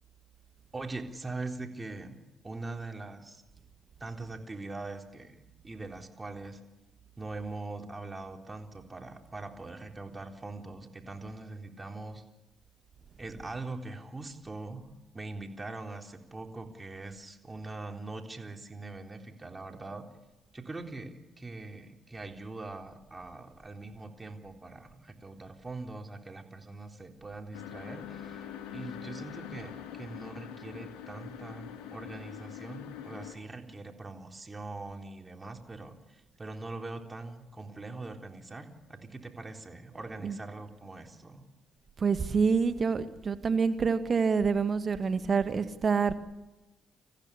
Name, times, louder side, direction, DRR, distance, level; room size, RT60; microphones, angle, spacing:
voice 1, 0.7-2.2 2.4-3.4 4.0-5.4 5.6-6.6 7.2-12.2 13.2-20.1 20.5-41.4, right 2 dB, 20° right, 3 dB, 3.8 m, -42 dB
sound 1, 27.5-33.4, left 10 dB, 80° left, 2.8 m, -44 dB
voice 2, 40.0-40.4 42.0-46.1, right 5 dB, 45° right, 11 dB, 2.0 m, -27 dB
26.5 x 15.0 x 10.0 m, 1.0 s
hypercardioid pair, 55°, 0 cm